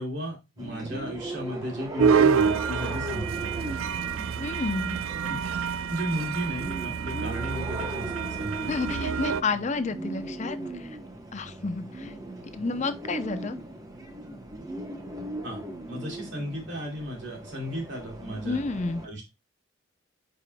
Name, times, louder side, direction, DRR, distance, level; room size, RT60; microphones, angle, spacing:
voice 1, 0.0-3.5 5.2-5.4 5.9-8.1 8.4-8.7 15.4-15.6 15.9-18.6 19.0-19.2, equal, 55° right, 3.0 m, -34 dB
sound 1, 0.6-19.1, right 1 dB, 15° right, 0.9 m, -38 dB
sound 2, 2.0-9.4, right 6 dB, 85° right, 0.4 m, -27 dB
voice 2, 4.4-5.0 8.7-11.0 11.3-12.1 12.5-13.6 18.4-19.0, left 3 dB, 35° left, 0.6 m, -30 dB
8.8 x 4.8 x 2.2 m
head